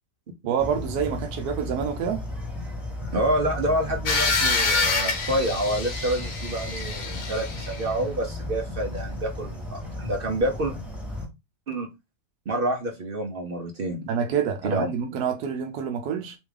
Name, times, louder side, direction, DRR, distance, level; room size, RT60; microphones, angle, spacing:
voice 1, 0.5-2.2 14.1-16.4, right 7 dB, 90° right, 1.1 m, -27 dB
sound 1, 0.6-11.3, left 1 dB, ahead, 0.7 m, -35 dB
voice 2, 3.1-10.7 11.7-11.9 12.5-14.0 14.6-14.9, right 1 dB, 50° right, 0.7 m, -28 dB
sound 2, 4.1-7.8, left 4 dB, 55° left, 1.2 m, -26 dB
3.5 x 3.0 x 3.2 m
omnidirectional pair, 1.6 m